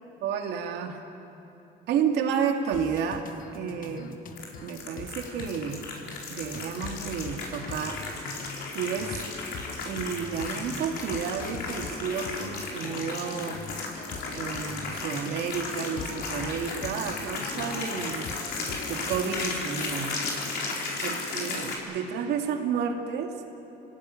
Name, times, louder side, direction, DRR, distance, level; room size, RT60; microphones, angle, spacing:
voice 1, 0.2-1.0 1.9-3.3 3.5-4.2 4.6-5.8 6.3-8.0 8.7-9.2 9.8-13.6 14.3-18.3 18.9-20.2 21.0-23.3, right 7 dB, 80° right, 3 dB, 2.4 m, -31 dB
sound 1, 2.7-19.4, left 5 dB, 55° left, 1.5 m, -43 dB
sound 2, 4.3-21.7, left 3 dB, 75° left, 4.9 m, -35 dB
27.5 x 17.5 x 9.2 m, 2.9 s
cardioid pair, 110°, 17 cm